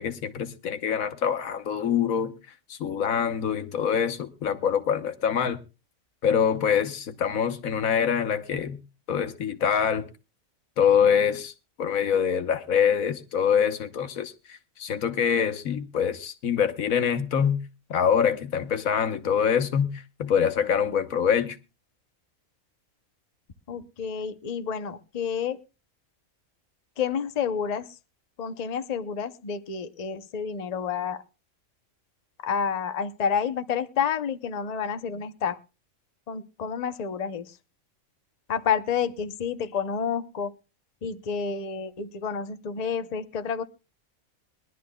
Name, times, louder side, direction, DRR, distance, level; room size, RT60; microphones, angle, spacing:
voice 1, 0.0-2.3 2.7-5.6 6.2-8.8 9.1-10.1 10.8-11.5 11.8-17.6 17.9-19.9 20.2-21.6, left 7 dB, 85° left, 1.4 m, -25 dB
voice 2, 23.7-25.6 27.0-27.8 28.4-31.2 32.4-35.6 36.3-37.5 38.5-40.5 41.0-43.6, left 7 dB, 35° left, 0.7 m, -29 dB
21.5 x 12.0 x 2.2 m
omnidirectional pair, 1.4 m